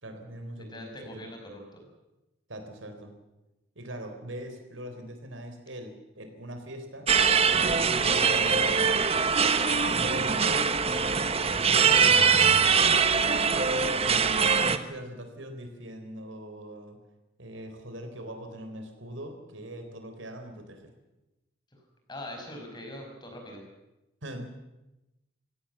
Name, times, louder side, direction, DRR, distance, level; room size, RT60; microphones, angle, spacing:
voice 1, 0.0-1.2 2.5-3.1 3.8-7.1 7.7-9.0 9.7-10.7 11.4-12.8 13.7-17.0 17.4-20.9 24.2-24.5, right 1 dB, 80° right, 6 dB, 3.9 m, -42 dB
voice 2, 0.7-1.9 9.6-9.9 21.7-21.8 22.1-23.6, left 1 dB, 20° left, 2 dB, 5.8 m, -42 dB
sound 1, 7.1-14.8, right 6 dB, 30° right, 1.1 m, -23 dB
26.5 x 16.5 x 7.3 m, 0.97 s
head